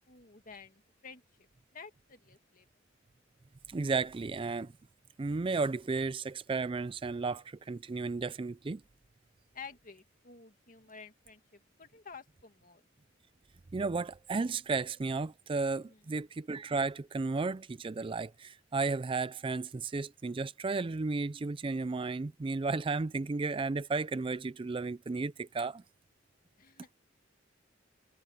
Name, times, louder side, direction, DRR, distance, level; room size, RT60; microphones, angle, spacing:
voice 1, 0.1-2.7 9.5-12.8 15.9-16.2 26.6-27.0, left 5 dB, 45° left, 2.2 m, -51 dB
voice 2, 3.7-4.7 5.2-8.8 13.7-25.8, right 3 dB, 25° right, 0.4 m, -33 dB
head